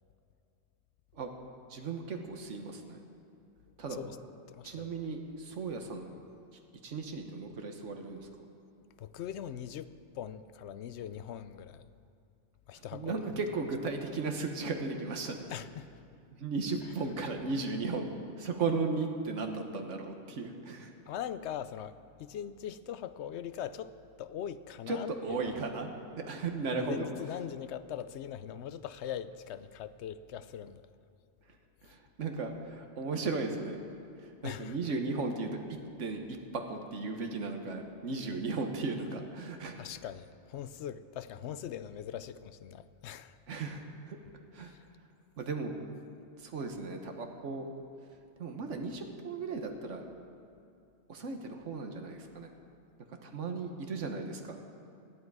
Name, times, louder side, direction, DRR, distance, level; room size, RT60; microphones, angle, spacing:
voice 1, 1.7-3.0 3.8-4.0 4.6-6.2 6.5-8.3 12.7-15.5 16.3-20.9 24.9-27.1 31.4-33.8 34.2-39.9 43.5-44.2 44.5-44.7 45.4-45.8 46.4-47.7 48.4-50.1 51.1-52.5 53.0-54.6, right 3 dB, 85° right, 4 dB, 1.5 m, -36 dB
voice 2, 3.8-4.2 4.5-4.9 9.0-11.9 12.7-13.1 15.5-15.9 21.1-25.4 26.7-30.9 31.8-31.9 34.4-34.7 39.8-43.4 44.6-44.8, left 9 dB, 70° left, 13 dB, 0.9 m, -41 dB
19.5 x 13.0 x 4.8 m, 2.6 s
omnidirectional pair, 1.2 m